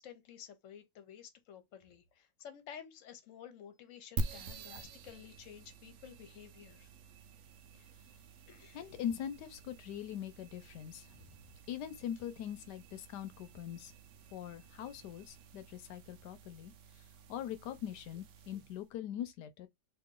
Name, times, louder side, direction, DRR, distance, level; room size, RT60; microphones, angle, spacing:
voice 1, 0.0-6.9 8.5-8.8, left 9 dB, 55° left, 1.1 m, -52 dB
sound 1, 4.2-18.9, right 3 dB, 70° right, 0.8 m, -47 dB
voice 2, 8.7-11.3 11.7-13.9 14.3-16.7 17.3-19.7, left 10 dB, 75° left, 1.2 m, -42 dB
3.0 x 2.7 x 3.7 m
omnidirectional pair, 1.9 m